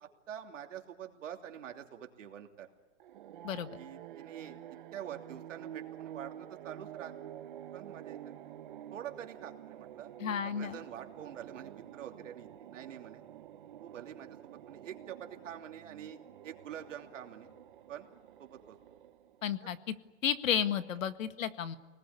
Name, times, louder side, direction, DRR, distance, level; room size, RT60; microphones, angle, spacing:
voice 1, 0.0-2.7 3.8-4.6 4.9-7.1 7.7-8.3 8.9-10.1 10.4-13.2 13.8-16.2 16.4-17.5 17.9-18.1 18.4-18.8, right 9 dB, 70° right, 4 dB, 3.0 m, -46 dB
sound 1, 3.0-19.6, right 11 dB, 40° right, 1.0 m, -49 dB
voice 2, 3.4-3.8 10.2-10.8 19.4-19.9 20.2-21.8, left 8 dB, 90° left, 11 dB, 1.9 m, -32 dB
28.0 x 20.0 x 9.7 m, 1.3 s
hypercardioid pair, 180°, 38 cm